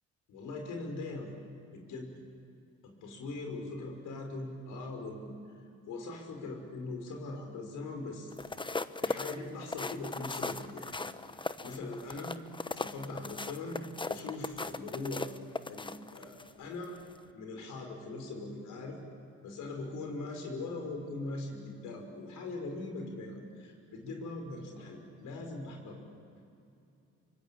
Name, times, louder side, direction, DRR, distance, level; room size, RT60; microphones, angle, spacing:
voice 1, 0.3-1.3 1.7-2.1 2.8-5.3 5.9-8.3 9.0-11.1 11.6-12.4 12.7-15.3 15.7-17.0 17.3-19.0 19.4-26.0, left 2 dB, 85° left, 3 dB, 5.8 m, -41 dB
sound 1, 8.3-16.5 17.0-17.2, left 3 dB, 15° left, 0.9 m, -38 dB
26.0 x 24.5 x 8.6 m, 2.6 s
cardioid pair, 90°, 30 cm